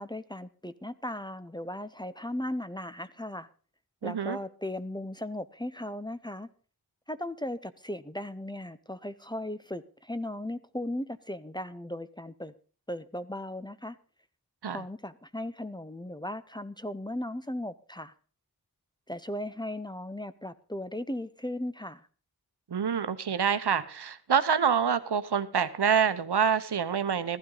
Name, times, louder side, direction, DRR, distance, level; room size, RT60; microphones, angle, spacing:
voice 1, 0.0-3.5 4.0-6.5 7.1-12.5 12.9-14.0 14.7-18.1 19.1-22.0, left 1 dB, 10° left, 13 dB, 0.7 m, -37 dB
voice 2, 4.0-4.4 14.6-14.8 22.7-27.4, right 7 dB, 80° right, 12 dB, 0.9 m, -26 dB
15.5 x 12.0 x 3.9 m, 0.39 s
wide cardioid pair, 45°, 39 cm